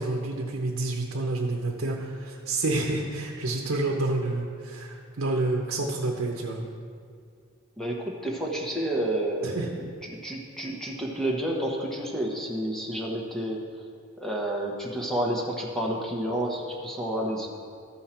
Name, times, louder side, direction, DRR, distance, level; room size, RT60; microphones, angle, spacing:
voice 1, 0.0-6.6 9.4-9.7, right 2 dB, 70° right, 0 dB, 0.9 m, -29 dB
voice 2, 7.8-13.8 14.2-17.5, right 1 dB, ahead, -2 dB, 1.1 m, -30 dB
13.5 x 5.6 x 4.4 m, 2.2 s
head